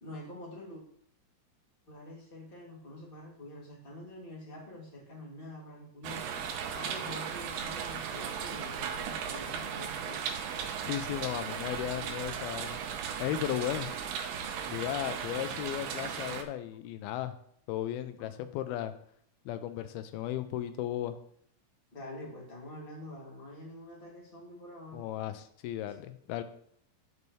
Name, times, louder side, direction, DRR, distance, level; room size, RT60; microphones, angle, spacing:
voice 1, 0.0-0.8 1.9-6.4 6.7-10.2 18.2-18.4 21.9-25.0, left 1 dB, 15° left, -3 dB, 2.1 m, -46 dB
sound 1, 6.0-16.4, right 7 dB, 90° right, 2.8 m, -37 dB
voice 2, 10.9-12.8 13.2-13.9 14.7-17.3 17.7-18.9 19.5-21.2 24.9-26.4, left 12 dB, 90° left, 10 dB, 2.5 m, -35 dB
12.0 x 5.4 x 3.2 m, 0.64 s
omnidirectional pair, 4.3 m